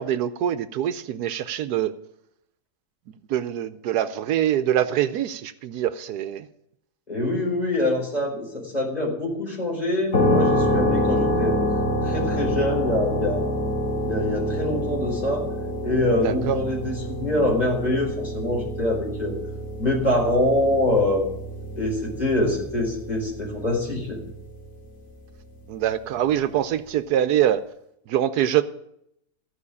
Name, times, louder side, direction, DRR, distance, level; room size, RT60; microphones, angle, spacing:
voice 1, 0.0-1.9 3.3-6.5 16.2-16.6 25.7-27.6 28.1-28.6, right 11 dB, 80° right, 12 dB, 1.2 m, -24 dB
voice 2, 7.1-11.6 12.0-13.5 14.0-15.4 15.8-19.3 19.8-21.2 21.8-24.2, left 1 dB, 25° left, -1 dB, 4.4 m, -24 dB
sound 1, 10.1-24.8, left 1 dB, 60° left, 2.5 m, -27 dB
15.5 x 5.7 x 9.7 m, 0.76 s
omnidirectional pair, 1.7 m